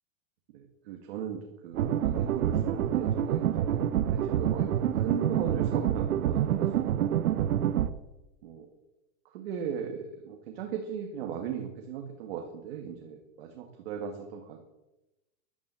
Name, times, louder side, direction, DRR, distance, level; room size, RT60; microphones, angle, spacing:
voice 1, 0.5-7.2 8.4-8.7 9.3-14.6, right 7 dB, 45° right, 2 dB, 2.1 m, -38 dB
sound 1, 1.7-7.9, right 10 dB, 80° right, 1.2 m, -27 dB
14.5 x 11.5 x 7.8 m, 0.98 s
supercardioid pair, 175°, 42 cm